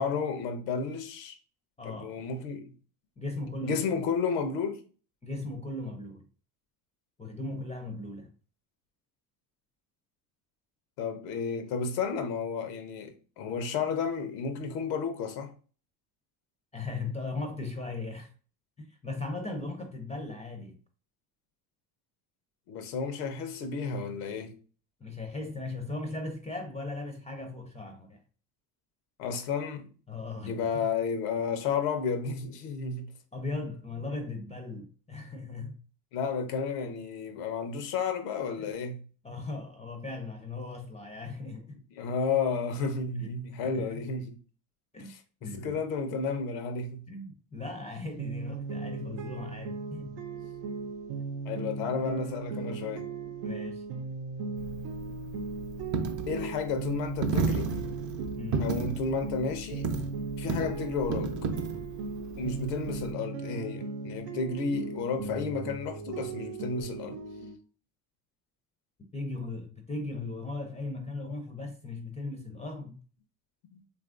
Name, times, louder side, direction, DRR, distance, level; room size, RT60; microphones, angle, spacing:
voice 1, 0.0-1.4 1.8-2.7 3.6-4.8 11.0-15.5 22.7-24.5 29.2-29.9 30.5-33.1 36.1-39.0 41.9-44.4 45.0-47.1 50.3-50.4 51.5-53.1 56.3-57.8 58.6-59.9 60.4-61.5 62.4-67.2 73.7-73.8, left 5 dB, 85° left, 0.7 m, -32 dB
voice 2, 1.8-2.1 3.2-3.8 5.2-6.2 7.2-8.3 16.7-18.3 18.8-20.8 25.0-28.2 30.1-30.9 33.3-35.8 38.6-38.7 39.2-41.8 43.2-43.3 43.6-44.0 44.9-45.1 45.4-45.7 47.1-50.2 53.4-53.8 58.4-58.7 69.1-73.0, left 2 dB, 15° left, 0.4 m, -38 dB
sound 1, 48.2-67.6, right 4 dB, 85° right, 0.6 m, -38 dB
Coin (dropping), 54.6-63.1, right 4 dB, 40° right, 0.5 m, -33 dB
3.0 x 2.5 x 2.4 m
supercardioid pair, 75°, 48 cm